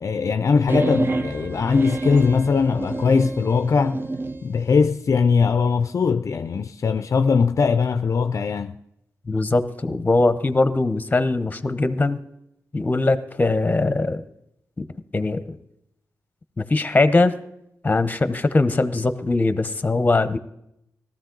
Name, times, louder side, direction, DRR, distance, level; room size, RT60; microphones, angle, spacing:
voice 1, 0.0-4.0 4.4-8.8, left 5 dB, 55° left, 0.4 m, -20 dB
sound 1, 0.7-4.4, right 2 dB, 35° right, 0.6 m, -28 dB
voice 2, 9.3-12.2 12.7-14.2 14.8-14.9 15.1-15.6 16.6-17.3 17.8-20.4, left 2 dB, 25° left, 0.8 m, -21 dB
18.5 x 13.5 x 3.9 m
wide cardioid pair, 110°, 6 cm